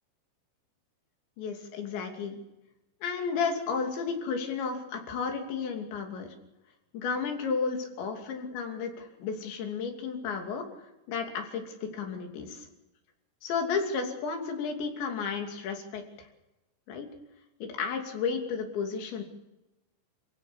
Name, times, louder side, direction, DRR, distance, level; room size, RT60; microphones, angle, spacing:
voice 1, 1.4-2.4 3.0-6.3 6.9-12.7 13.4-16.3 16.9-17.1 17.6-19.2, left 5 dB, 70° left, 3 dB, 5.0 m, -33 dB
28.0 x 16.5 x 7.2 m, 0.96 s
omnidirectional pair, 5.5 m